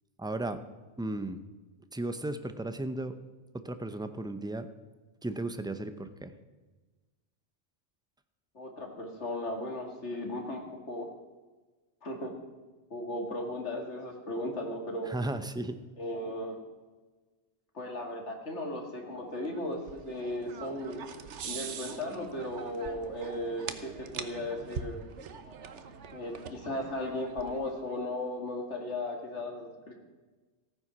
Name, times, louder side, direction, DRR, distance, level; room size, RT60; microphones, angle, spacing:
voice 1, 0.2-0.6 1.0-1.4 1.9-3.2 3.5-4.7 5.2-6.3 15.0-15.8, right 2 dB, 5° right, 10 dB, 0.6 m, -35 dB
voice 2, 8.5-11.1 12.0-12.3 12.9-15.1 16.0-16.6 17.7-21.0 21.4-25.0 26.1-29.9, left 1 dB, 85° left, 2 dB, 2.6 m, -36 dB
sound 1, 19.4-28.0, right 6 dB, 90° right, 1.2 m, -43 dB
15.0 x 9.4 x 6.1 m, 1.3 s
omnidirectional pair, 1.2 m